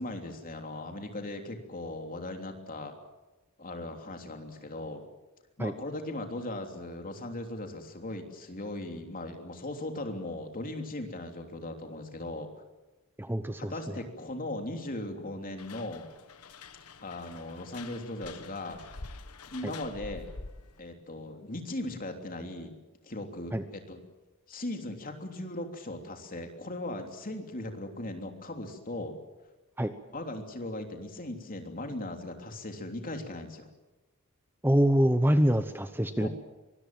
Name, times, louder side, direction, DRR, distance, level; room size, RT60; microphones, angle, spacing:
voice 1, 0.0-2.9 3.6-5.0 5.6-12.5 13.7-16.1 17.0-18.8 19.5-20.3 20.8-22.7 23.0-24.0 24.5-29.1 30.1-33.7 36.2-36.3, left 1 dB, 40° left, 4 dB, 3.3 m, -38 dB
voice 2, 13.2-14.0 19.6-19.7 23.5-23.6 29.8-29.9 34.6-36.3, equal, 10° right, 9 dB, 0.9 m, -25 dB
sound 1, 15.6-20.8, left 3 dB, 85° left, 1.4 m, -46 dB
24.0 x 21.5 x 7.7 m, 1.1 s
head